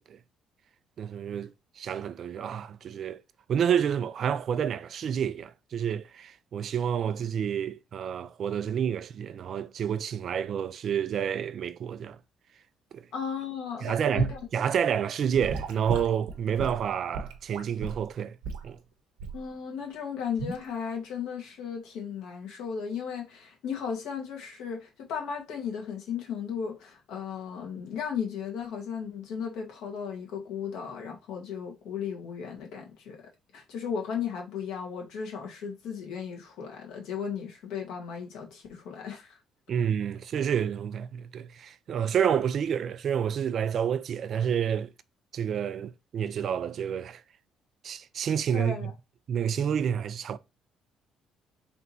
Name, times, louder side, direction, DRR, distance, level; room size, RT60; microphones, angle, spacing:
voice 1, 1.0-3.2 3.5-12.2 12.9-13.0 13.8-18.4 18.6-18.8 39.7-44.9 45.3-47.2 47.8-48.9 49.3-50.4, right 8 dB, 60° right, 0.4 m, -29 dB
voice 2, 13.1-14.4 19.3-33.2 33.5-39.4 48.5-48.9, left 7 dB, 80° left, 1.3 m, -35 dB
Gurgling / Sink (filling or washing) / Liquid, 14.2-14.4 15.4-18.1 18.4-18.7 19.2-19.5 20.4-20.6, right 4 dB, 85° right, 0.8 m, -33 dB
3.4 x 2.9 x 4.0 m
supercardioid pair, 70°, 0 cm